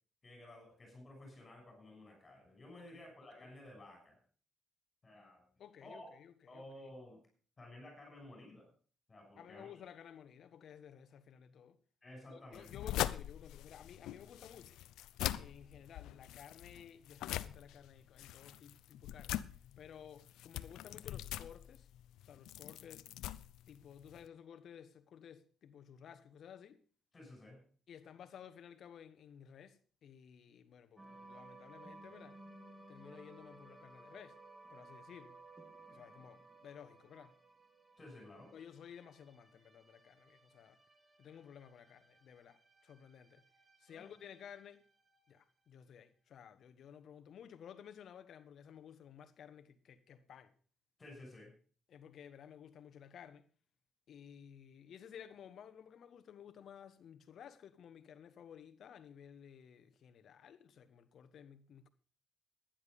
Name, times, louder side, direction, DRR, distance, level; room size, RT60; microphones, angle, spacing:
voice 1, 0.2-4.2 5.0-5.5 5.8-6.1 6.5-7.2 7.6-8.7 9.1-9.7 12.0-12.9 27.1-27.6 38.0-38.5 43.9-44.1 51.0-51.5, left 1 dB, 30° left, 6.6 m, -54 dB
voice 2, 5.6-6.7 9.4-11.8 12.3-14.8 15.3-19.5 19.8-21.9 22.2-23.1 23.7-26.8 27.9-32.4 32.9-34.4 34.7-35.4 35.9-37.4 38.5-40.8 41.2-43.4 43.8-44.8 45.3-50.5 51.9-53.5 54.1-61.9, left 8 dB, 65° left, 1.3 m, -55 dB
sound 1, 12.5-24.3, left 13 dB, 90° left, 0.6 m, -43 dB
sound 2, 31.0-45.4, right 2 dB, 20° right, 2.4 m, -59 dB
12.0 x 10.5 x 5.4 m
cardioid pair, 90°, 0 cm